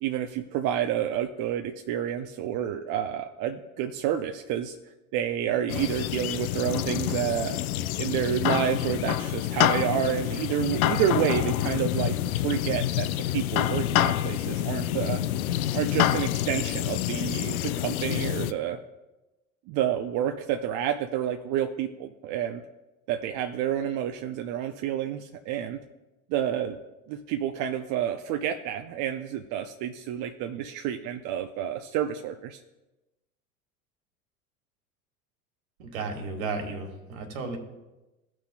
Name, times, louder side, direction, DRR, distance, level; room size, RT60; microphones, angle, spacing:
voice 1, 0.0-4.8 5.1-7.6 8.0-12.1 12.4-13.1 13.3-15.2 15.7-18.8 19.7-22.6 23.1-25.8 26.3-26.8 27.1-32.6, right 10 dB, 45° right, 6 dB, 0.6 m, -29 dB
sound 1, 5.7-18.5, left 12 dB, 70° left, 0.6 m, -27 dB
voice 2, 35.8-37.6, right 4 dB, 65° right, 3 dB, 2.1 m, -33 dB
15.5 x 6.0 x 2.3 m, 1.0 s
hypercardioid pair, 80°, 44 cm